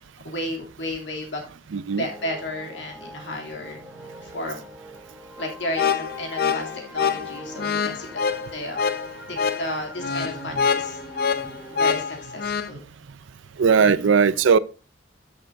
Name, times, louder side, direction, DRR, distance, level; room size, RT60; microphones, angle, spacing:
voice 1, 0.2-1.4 1.9-3.8 4.2-4.7 5.4-8.2 8.5-8.8 9.3-11.4 11.7-12.8, left 1 dB, 75° left, 2.7 m, -33 dB
voice 2, 1.7-2.0 13.6-14.6, right 6 dB, 80° right, 0.4 m, -18 dB
sound 1, 2.1-11.8, equal, 5° right, 0.9 m, -44 dB
sound 2, 5.7-12.7, left 6 dB, 55° left, 0.6 m, -25 dB
12.5 x 6.7 x 2.6 m
head